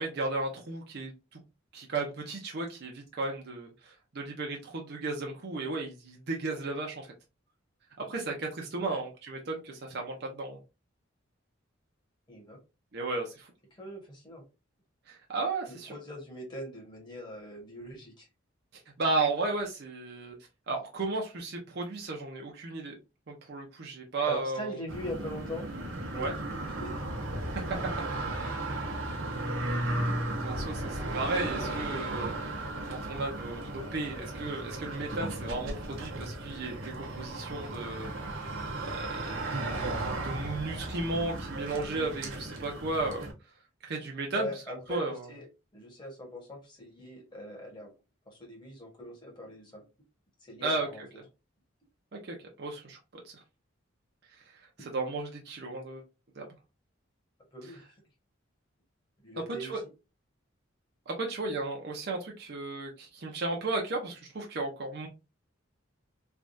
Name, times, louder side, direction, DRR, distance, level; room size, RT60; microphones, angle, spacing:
voice 1, 0.0-1.4 1.7-7.1 8.0-10.6 12.9-13.5 15.1-15.9 18.7-20.4 20.7-22.9 23.3-24.8 26.2-26.4 27.6-27.7 30.4-32.4 32.9-38.1 38.9-43.2 43.8-45.3 50.6-51.1 52.1-53.0 53.2-53.4 54.4-56.0 56.4-56.5 57.6-57.7 59.6-59.8 61.1-65.1, right 3 dB, 55° right, 0.6 m, -34 dB
voice 2, 12.3-12.6 13.7-14.4 15.7-18.3 24.2-25.7 26.0-27.0 44.3-45.5 45.7-47.9 48.3-49.8 50.4-51.0 57.5-57.9 59.2-59.7, left 1 dB, 25° left, 1.2 m, -42 dB
sound 1, 24.9-43.3, right 1 dB, 85° right, 0.9 m, -35 dB
3.3 x 2.3 x 2.5 m
head